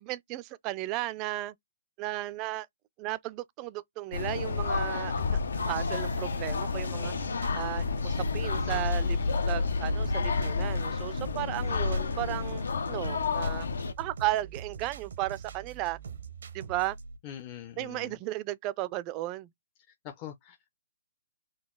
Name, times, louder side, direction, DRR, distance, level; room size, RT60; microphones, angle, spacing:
voice 1, 0.0-1.5 2.0-2.7 3.0-5.4 5.7-7.1 7.5-9.2 9.5-13.7 14.0-16.0 16.5-17.0 17.8-19.5, right 17 dB, 25° right, 0.3 m, -34 dB
sound 1, 4.1-13.9, left 4 dB, 80° left, 0.7 m, -31 dB
sound 2, 5.2-17.2, right 7 dB, 75° right, 0.7 m, -44 dB
sound 3, 8.7-11.9, left 3 dB, 45° left, 1.4 m, -31 dB
voice 2, 17.2-18.1 20.0-20.7, left 10 dB, 30° left, 0.5 m, -43 dB
3.8 x 2.2 x 3.7 m
hypercardioid pair, 150°, 0 cm